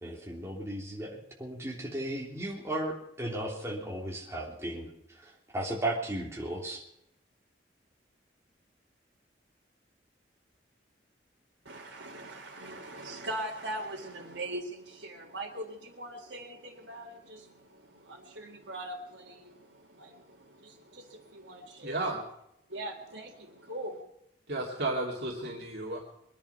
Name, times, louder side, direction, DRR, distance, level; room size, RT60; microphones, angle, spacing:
voice 1, 0.0-4.9 5.2-6.8, right 1 dB, 15° right, -2 dB, 3.3 m, -35 dB
voice 2, 11.6-22.0 22.7-24.0, right 1 dB, 80° right, -5 dB, 2.1 m, -41 dB
voice 3, 21.8-22.2 24.5-26.0, right 2 dB, 60° right, -2 dB, 2.8 m, -33 dB
22.5 x 10.5 x 5.8 m, 0.80 s
head